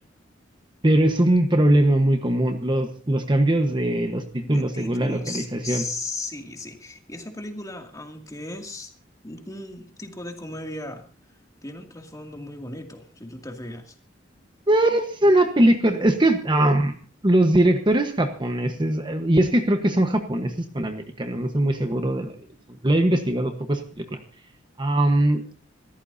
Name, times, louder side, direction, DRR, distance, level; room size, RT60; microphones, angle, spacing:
voice 1, 0.8-5.8 14.7-16.9 17.2-22.3 22.8-24.2 24.8-25.4, right 1 dB, 25° right, 6 dB, 1.2 m, -21 dB
voice 2, 4.4-8.9 9.2-11.0 11.6-14.0 15.6-15.8, left 2 dB, 20° left, 3 dB, 2.4 m, -36 dB
27.0 x 14.0 x 2.7 m, 0.38 s
head